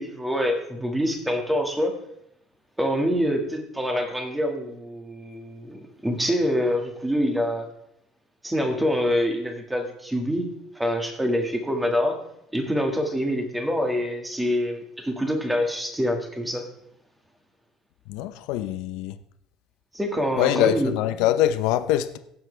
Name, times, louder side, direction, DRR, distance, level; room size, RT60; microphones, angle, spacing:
voice 1, 0.0-2.0 2.8-7.7 8.4-10.5 10.8-12.2 12.5-16.7 19.9-20.9, equal, 5° right, 1.7 m, -25 dB
voice 2, 18.1-19.2 20.4-22.2, left 12 dB, 80° left, 0.7 m, -23 dB
17.5 x 7.4 x 3.3 m
cardioid pair, 140°, 0 cm